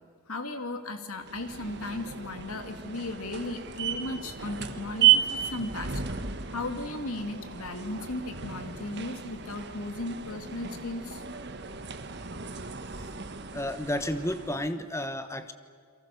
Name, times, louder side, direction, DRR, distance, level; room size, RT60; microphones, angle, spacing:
voice 1, 0.3-6.0 6.5-11.2, left 2 dB, 80° left, 7 dB, 2.3 m, -36 dB
sound 1, 1.2-14.7, right 10 dB, 50° right, 1.5 m, -32 dB
voice 2, 13.5-15.5, left 1 dB, 15° left, 10 dB, 1.1 m, -31 dB
29.0 x 23.5 x 6.9 m, 2.1 s
head